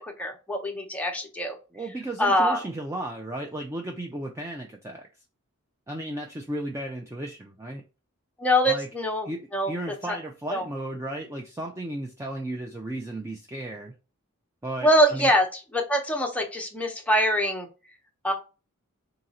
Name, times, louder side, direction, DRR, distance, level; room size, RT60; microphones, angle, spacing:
voice 1, 0.0-1.6 2.2-2.6 8.4-9.7 10.1-10.2 10.5-10.7 14.8-17.7 18.2-18.3, equal, 5° left, 1 dB, 0.8 m, -24 dB
voice 2, 1.7-5.0 5.9-7.8 8.7-8.9 9.2-13.9 14.6-15.3, right 1 dB, 10° right, 1 dB, 0.4 m, -34 dB
3.9 x 2.5 x 4.2 m, 0.32 s
head